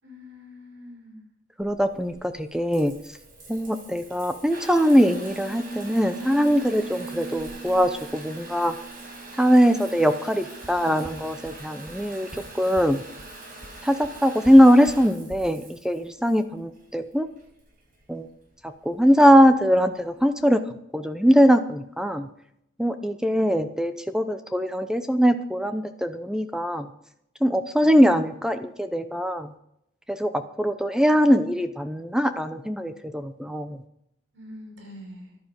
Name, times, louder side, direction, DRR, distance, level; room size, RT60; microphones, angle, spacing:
voice 1, 0.0-1.2 34.3-35.4, left 1 dB, 70° right, 2 dB, 5.6 m, -44 dB
voice 2, 1.6-2.9 3.5-8.7 9.4-12.3 12.5-13.0 13.8-17.3 18.1-18.3 18.6-20.6 20.9-22.3 22.8-26.9 27.4-29.5 30.1-33.8, equal, 5° right, 9 dB, 0.6 m, -21 dB
Water tap faucet / Bathtub (filling or washing) / Trickle dribble, 1.6-20.5, right 3 dB, 45° right, 5.0 m, -42 dB
sound 1, 10.6-10.7 11.0-11.1 11.4-11.5 11.9-12.0 12.3-12.4 12.7-12.8 13.2-13.3 13.6-13.7 14.0-14.1 14.4-14.5 14.9-15.0 15.3-15.4, equal, 25° right, 2.1 m, -41 dB
13.5 x 11.5 x 5.3 m, 0.76 s
head